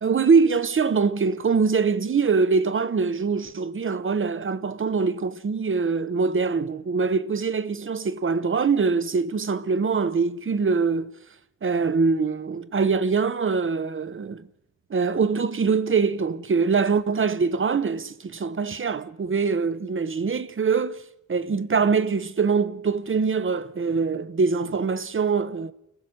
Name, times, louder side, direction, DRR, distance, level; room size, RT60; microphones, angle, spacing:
voice 1, 0.0-11.1 11.6-14.5 14.9-21.0 21.3-25.7, right 5 dB, 45° right, 0.7 m, -23 dB
29.5 x 15.0 x 6.4 m
wide cardioid pair, 140°, 30 cm